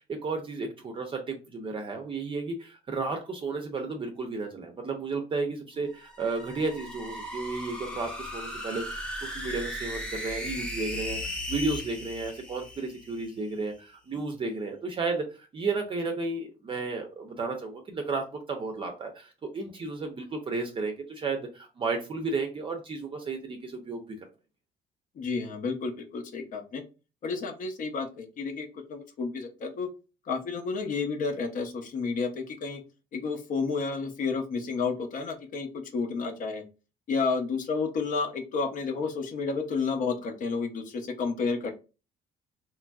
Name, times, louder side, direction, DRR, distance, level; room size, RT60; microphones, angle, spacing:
voice 1, 0.0-24.0, right 3 dB, 30° right, 3 dB, 0.5 m, -33 dB
sound 1, 5.8-13.3, equal, 5° left, 0.8 m, -37 dB
voice 2, 25.2-26.8 27.2-29.9 30.3-32.8 33.1-36.6 37.1-41.7, left 4 dB, 50° left, 5 dB, 0.6 m, -31 dB
2.9 x 2.5 x 2.3 m, 0.32 s
cardioid pair, 110°, 17 cm